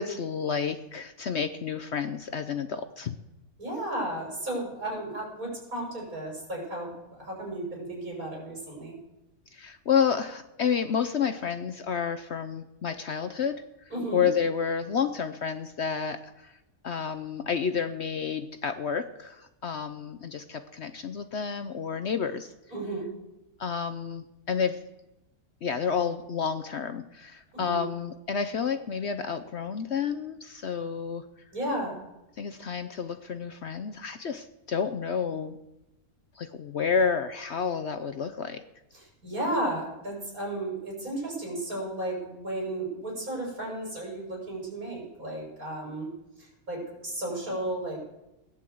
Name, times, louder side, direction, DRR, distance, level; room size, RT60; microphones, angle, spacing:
voice 1, 0.0-3.1 9.5-13.6 14.1-16.5 16.8-22.5 23.6-24.8 25.6-31.3 32.4-35.6 36.4-38.6, left 6 dB, 55° left, 9 dB, 0.9 m, -30 dB
voice 2, 3.6-8.9 13.9-14.3 22.7-23.1 27.5-27.8 31.5-31.9 38.9-46.1 46.7-48.0, right 1 dB, 70° right, -2 dB, 6.4 m, -34 dB
17.0 x 10.0 x 7.7 m, 0.94 s
omnidirectional pair, 1.6 m